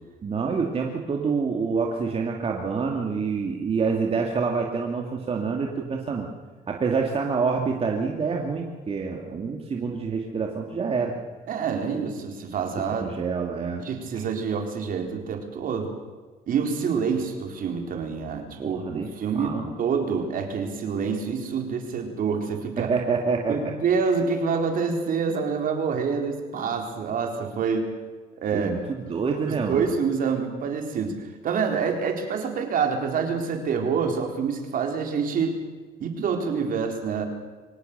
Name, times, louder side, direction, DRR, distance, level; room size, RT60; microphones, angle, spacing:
voice 1, 0.2-6.3 6.7-11.2 13.0-13.8 18.6-19.1 19.4-19.7 22.8-23.7 28.5-29.9, right 5 dB, 35° right, 1 dB, 2.3 m, -27 dB
voice 2, 11.5-13.1 13.8-15.9 16.5-22.9 23.5-27.9 28.4-28.7 29.5-31.2 31.4-35.6 36.0-37.3, right 5 dB, 55° right, 4 dB, 3.9 m, -27 dB
24.0 x 18.0 x 6.8 m, 1.4 s
cardioid pair, 110°, 17 cm